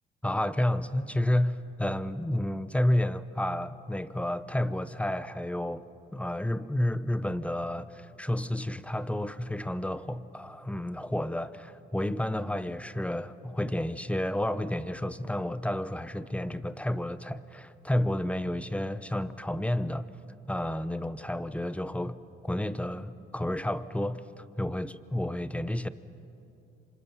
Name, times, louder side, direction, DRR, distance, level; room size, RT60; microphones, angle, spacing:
voice 1, 0.2-5.8 6.1-20.1 20.5-22.2 22.4-25.9, left 1 dB, 5° left, 14 dB, 0.9 m, -31 dB
27.5 x 26.0 x 7.2 m, 2.7 s
cardioid pair, 90°, 20 cm